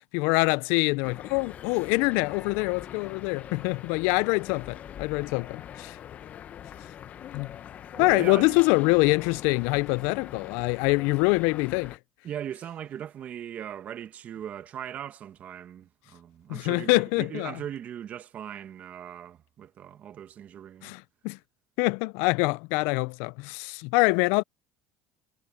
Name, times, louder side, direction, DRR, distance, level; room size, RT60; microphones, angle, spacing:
voice 1, 0.1-6.0 7.3-7.5 8.0-12.0 16.5-17.5 20.8-21.4 21.8-24.4, left 27 dB, 80° left, 0.4 m, -25 dB
sound 1, 1.0-12.0, left 10 dB, 45° left, 1.1 m, -43 dB
voice 2, 8.0-8.6 12.2-20.9, right 10 dB, 45° right, 1.6 m, -39 dB
supercardioid pair, 110°, 4 cm